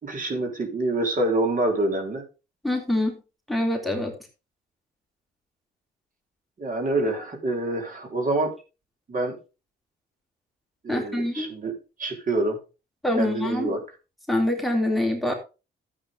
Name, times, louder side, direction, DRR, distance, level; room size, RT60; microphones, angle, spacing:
voice 1, 0.0-2.2 6.6-8.5 9.1-9.4 10.8-11.7 12.0-12.6 13.2-13.8, right 2 dB, 45° right, 4 dB, 4.0 m, -26 dB
voice 2, 2.6-3.2 3.5-4.1 10.9-11.5 13.0-13.8 14.3-15.3, left 1 dB, ahead, 3 dB, 3.4 m, -25 dB
13.0 x 8.5 x 3.6 m, 0.30 s
cardioid pair, 90°, 20 cm